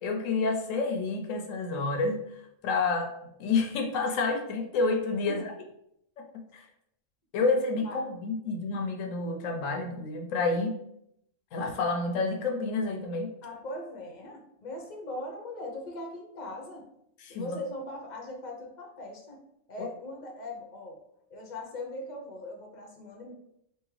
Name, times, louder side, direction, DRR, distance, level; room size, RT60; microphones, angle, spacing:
voice 1, 0.0-3.1 3.4-5.4 6.2-6.3 6.5-6.7 7.3-10.8 11.5-13.3 17.2-17.5 19.8-19.9, left 3 dB, 85° left, 3 dB, 1.0 m, -29 dB
voice 2, 13.4-16.9 17.3-19.4 19.7-21.0 21.3-23.3, left 1 dB, 40° left, 0 dB, 0.8 m, -40 dB
3.5 x 2.9 x 3.1 m, 0.76 s
omnidirectional pair, 1.3 m